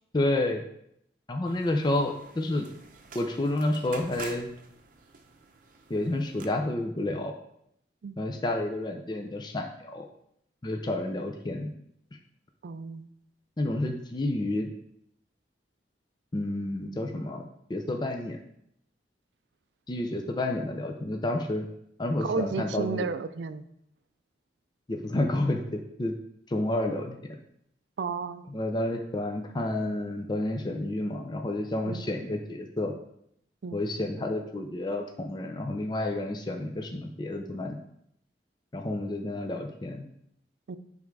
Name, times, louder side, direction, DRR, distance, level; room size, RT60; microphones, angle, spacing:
voice 1, 0.1-0.6 1.3-2.7 3.1-4.5 5.9-7.4 8.2-10.1 10.6-11.7 13.6-14.7 16.3-17.4 17.7-18.4 19.9-21.7 22.0-23.1 24.9-26.2 26.5-27.2 28.5-32.9 33.7-37.8 38.7-40.1, left 1 dB, 25° left, 3 dB, 0.5 m, -30 dB
sound 1, 1.4-6.4, right 5 dB, 50° right, 0.7 m, -48 dB
voice 2, 12.6-13.1 22.2-23.7 28.0-28.5 31.8-32.0 33.6-33.8 40.7-40.8, right 4 dB, 80° right, 12 dB, 0.4 m, -32 dB
8.4 x 3.5 x 4.7 m, 0.75 s
head